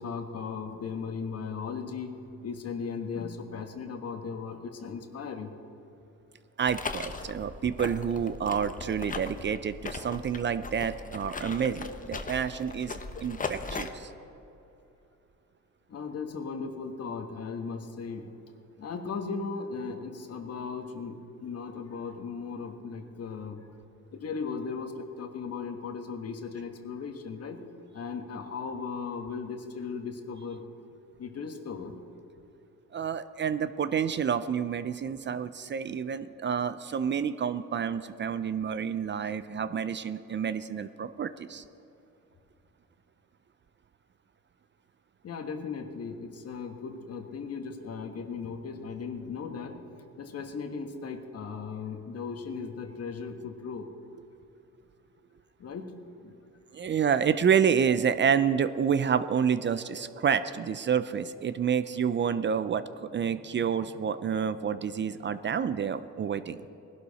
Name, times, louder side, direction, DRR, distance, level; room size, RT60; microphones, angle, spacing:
voice 1, 0.0-2.2 2.4-5.5 11.4-11.5 12.9-13.3 15.9-18.4 18.8-23.6 24.1-27.7 27.9-30.6 31.2-32.0 45.2-49.8 50.2-53.9 55.6-55.9 56.2-56.3, left 5 dB, 55° left, 6 dB, 1.5 m, -37 dB
voice 2, 6.6-14.1 32.9-41.6 56.7-66.6, right 7 dB, 40° right, 12 dB, 0.5 m, -29 dB
sound 1, 6.7-13.9, left 3 dB, 25° left, 0.9 m, -38 dB
19.0 x 12.0 x 4.2 m, 2.8 s
cardioid pair, 90°, 30 cm